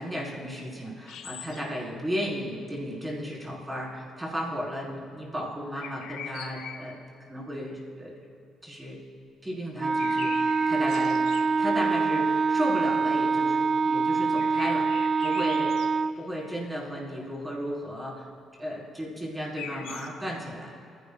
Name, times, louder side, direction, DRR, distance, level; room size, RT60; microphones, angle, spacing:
voice 1, 0.0-7.0 7.3-8.3 8.6-9.0 9.4-11.2 11.6-15.8 16.1-18.3 18.6-20.8, equal, 10° right, -5 dB, 4.3 m, -34 dB
sound 1, 1.0-1.8 5.7-7.0 9.8-11.6 14.4-16.0 19.3-20.1, left 8 dB, 85° left, 1.1 m, -42 dB
Wind instrument woodwind instrument, 9.8-16.2, right 4 dB, 30° right, 0.4 m, -25 dB
28.0 x 16.0 x 2.4 m, 2.7 s
cardioid pair, 140°, 0 cm